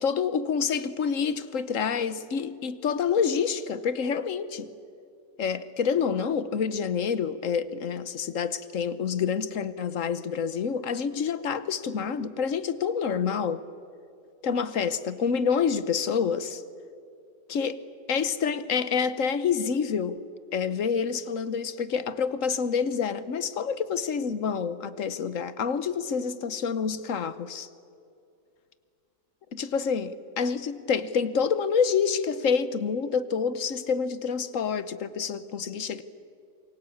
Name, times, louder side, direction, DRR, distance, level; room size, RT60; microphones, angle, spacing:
voice 1, 0.0-4.7 5.4-13.6 14.4-16.6 17.5-17.8 18.1-20.2 20.5-27.7 29.5-36.0, left 6 dB, 50° left, 14 dB, 1.3 m, -27 dB
27.0 x 23.0 x 8.6 m, 2.4 s
omnidirectional pair, 1.9 m